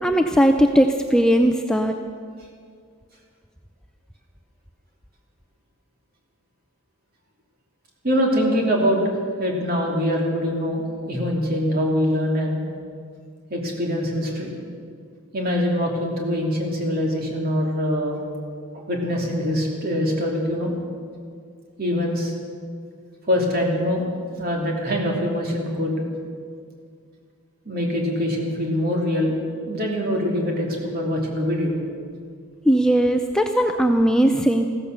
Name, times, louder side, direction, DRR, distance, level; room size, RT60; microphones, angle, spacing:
voice 1, 0.0-2.0 32.7-34.7, equal, 5° left, 5 dB, 0.5 m, -18 dB
voice 2, 8.0-9.0 9.4-12.6 13.5-14.5 15.3-18.2 18.7-20.7 21.8-22.3 23.3-24.1 24.4-26.0 27.6-29.4 29.7-31.8, equal, 45° right, -1 dB, 3.1 m, -23 dB
15.0 x 14.0 x 6.8 m, 2.2 s
head